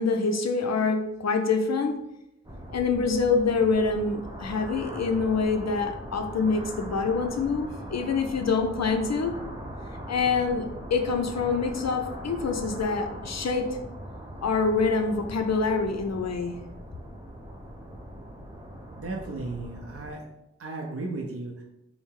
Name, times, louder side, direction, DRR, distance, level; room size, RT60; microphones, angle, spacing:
voice 1, 0.0-1.9 2.7-9.4 10.1-13.8 14.4-16.6, left 4 dB, 65° left, 5 dB, 0.5 m, -26 dB
sound 1, 2.4-20.1, equal, 15° right, 0.8 m, -40 dB
voice 2, 19.0-20.2 20.6-21.6, right 2 dB, 50° right, 0 dB, 0.6 m, -35 dB
4.6 x 2.1 x 3.6 m, 0.87 s
wide cardioid pair, 45°, 29 cm